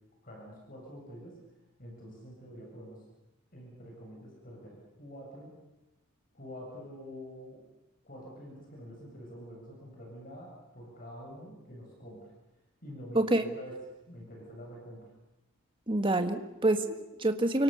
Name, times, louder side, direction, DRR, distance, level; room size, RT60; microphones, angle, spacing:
voice 1, 0.2-1.4 1.8-3.0 3.5-5.6 6.3-7.6 8.0-12.3 12.8-13.8 14.1-15.1, equal, 40° left, -1 dB, 7.6 m, -47 dB
voice 2, 13.1-13.5 15.9-17.6, right 1 dB, 25° right, 7 dB, 1.8 m, -27 dB
29.5 x 24.5 x 7.0 m, 0.97 s
head